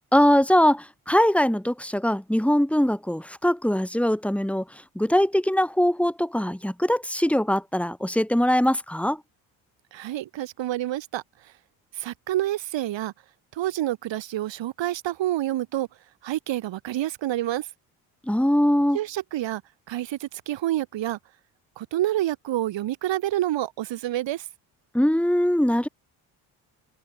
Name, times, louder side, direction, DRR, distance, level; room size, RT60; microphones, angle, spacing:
voice 1, 0.1-9.2 18.3-19.0 24.9-25.9, equal, 5° left, 7.2 m, -22 dB
voice 2, 9.9-11.5 11.9-13.1 13.5-15.9 16.2-17.7 18.9-19.6 19.9-21.2 21.8-24.5, right 14 dB, 65° right, 5.5 m, -28 dB
hypercardioid pair, 55°, 47 cm